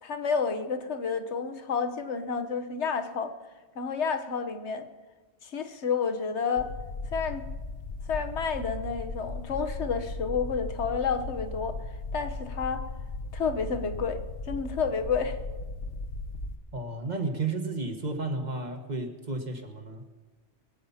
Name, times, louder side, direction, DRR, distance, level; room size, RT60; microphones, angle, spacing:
voice 1, 0.0-3.3 3.7-4.9 5.4-6.7 7.1-7.4 8.1-11.8 12.1-12.8 13.3-15.4, left 5 dB, 75° left, 8 dB, 1.4 m, -30 dB
sound 1, 6.6-16.6, left 3 dB, 60° left, 1.1 m, -37 dB
voice 2, 16.7-20.0, right 3 dB, 40° right, 4 dB, 1.6 m, -32 dB
23.5 x 8.6 x 5.7 m, 1.3 s
omnidirectional pair, 1.2 m